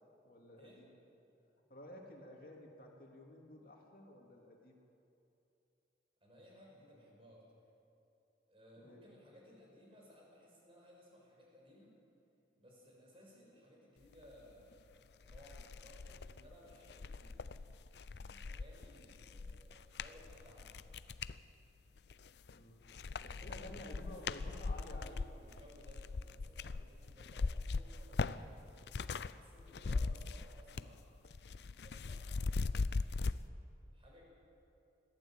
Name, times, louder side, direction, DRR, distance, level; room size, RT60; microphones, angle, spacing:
voice 1, 0.2-0.9 1.7-4.8 8.8-9.0 22.5-25.1, left 1 dB, 55° left, 0 dB, 2.7 m, -53 dB
voice 2, 6.2-7.4 8.5-11.9 12.6-17.5 18.1-20.8 23.2-28.6 29.2-31.1 31.8-33.1 33.9-34.2, equal, 30° right, -3 dB, 6.3 m, -60 dB
sound 1, 14.7-14.8 15.2-21.4 22.0-22.6 22.9-29.3 29.6-31.0 31.2-33.4, left 4 dB, 75° left, 0.5 m, -40 dB
21.0 x 15.0 x 8.9 m, 2.8 s
head